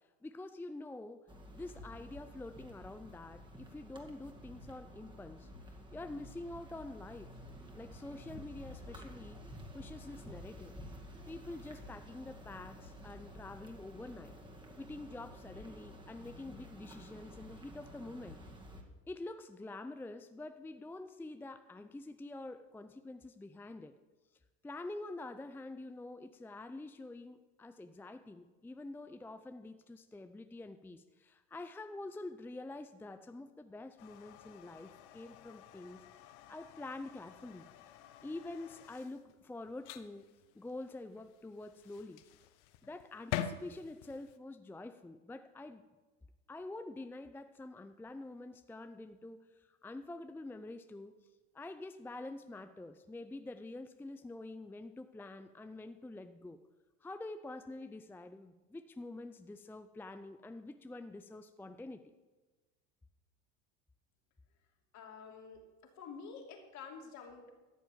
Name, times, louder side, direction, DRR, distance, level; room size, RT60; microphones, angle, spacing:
voice 1, 0.0-7.4 7.7-9.4 9.7-10.8 11.3-14.4 14.8-18.4 19.1-24.0 24.6-36.0 36.5-37.7 38.2-40.3 40.5-42.3 42.8-45.8 46.5-51.3 51.5-56.6 57.0-62.0, left 2 dB, 5° left, 8 dB, 0.5 m, -47 dB
sound 1, 1.3-18.8, equal, 15° right, 2.2 m, -51 dB
sound 2, 34.0-44.4, left 10 dB, 75° left, 1.0 m, -47 dB
voice 2, 64.9-67.5, left 5 dB, 50° left, 1 dB, 3.0 m, -49 dB
13.5 x 7.3 x 7.3 m, 1.2 s
supercardioid pair, 105°, 35 cm